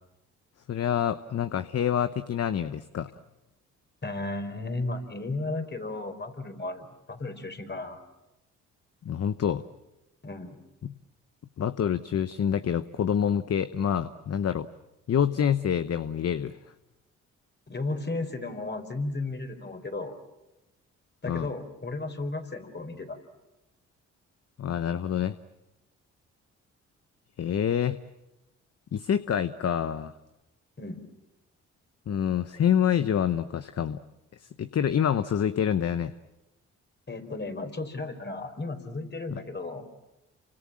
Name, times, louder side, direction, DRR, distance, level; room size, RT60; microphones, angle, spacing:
voice 1, 0.7-3.1 9.0-9.6 10.8-10.9 11.6-14.7 15.1-16.5 21.3-21.5 24.6-25.4 27.4-28.0 28.9-30.1 32.1-34.0 34.4-36.1 39.3-39.4, left 8 dB, 50° left, 12 dB, 0.9 m, -27 dB
voice 2, 4.0-8.0 10.2-10.6 17.7-20.2 21.2-23.2 30.8-31.0 37.1-39.9, left 2 dB, 35° left, 6 dB, 4.6 m, -34 dB
29.0 x 25.5 x 7.5 m, 0.95 s
supercardioid pair, 60°, 31 cm